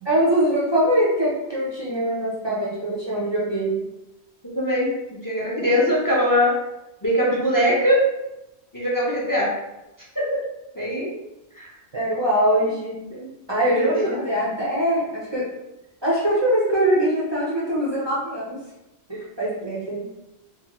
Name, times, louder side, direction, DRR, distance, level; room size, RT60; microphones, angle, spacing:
voice 1, 0.0-3.8 11.9-12.9 13.5-15.5 16.0-18.6 19.1-20.1, right 1 dB, 40° right, -6 dB, 0.4 m, -22 dB
voice 2, 4.4-6.5 7.0-8.1 8.7-9.5 10.2-10.4 10.8-11.1 11.6-11.7 13.1-13.3 13.7-14.3, equal, 35° left, -5 dB, 0.3 m, -22 dB
2.6 x 2.4 x 2.9 m, 0.93 s
omnidirectional pair, 1.1 m